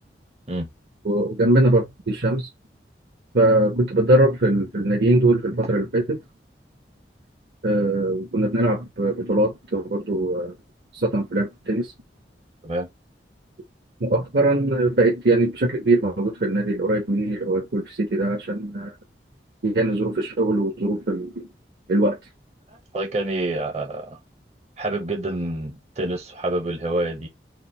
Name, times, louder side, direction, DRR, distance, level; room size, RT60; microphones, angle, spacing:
voice 1, 1.0-2.5 3.3-6.2 7.6-10.5 10.9-11.9 14.0-18.9 19.6-21.5 21.9-22.2, right 1 dB, 70° right, 1.0 m, -21 dB
voice 2, 22.7-24.2 24.8-27.3, right 1 dB, 35° right, 0.7 m, -27 dB
4.9 x 2.1 x 4.2 m
head